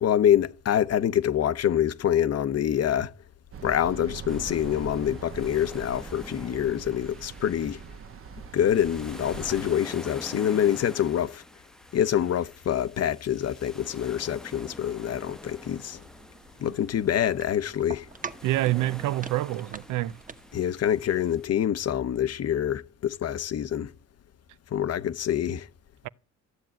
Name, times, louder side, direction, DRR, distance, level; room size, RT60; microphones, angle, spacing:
voice 1, 0.0-3.1 3.6-7.8 8.5-11.4 11.9-16.0 16.6-18.1 20.5-23.9 24.7-25.7, left 10 dB, 55° left, 0.9 m, -26 dB
sound 1, 3.5-9.7, right 6 dB, 45° right, 1.0 m, -42 dB
sound 2, 4.3-21.5, equal, ahead, 0.8 m, -47 dB
sound 3, 15.4-20.6, right 5 dB, 25° right, 1.2 m, -45 dB
voice 2, 18.4-20.2, right 16 dB, 90° right, 0.6 m, -27 dB
14.0 x 7.6 x 9.0 m
cardioid pair, 90°, 30 cm